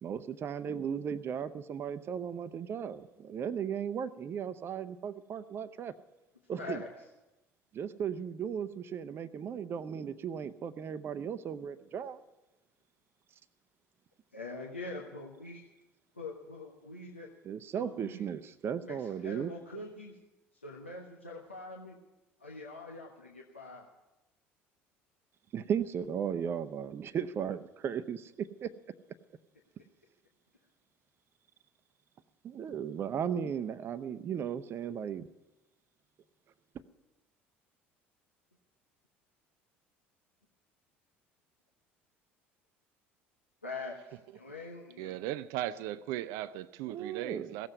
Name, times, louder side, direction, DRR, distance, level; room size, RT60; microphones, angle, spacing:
voice 1, 0.0-5.9 6.5-6.8 7.7-12.2 17.4-19.5 25.5-28.7 32.4-35.3 46.9-47.5, right 8 dB, 40° right, 0.8 m, -36 dB
voice 2, 6.6-6.9 14.3-15.6 16.1-17.3 17.8-18.2 18.8-20.2 20.6-22.0 22.4-23.9 43.6-45.2, left 2 dB, 85° left, 1.3 m, -44 dB
voice 3, 45.0-47.7, right 14 dB, 60° right, 0.4 m, -37 dB
16.5 x 7.7 x 9.5 m
figure-of-eight pair, 60°, 6 cm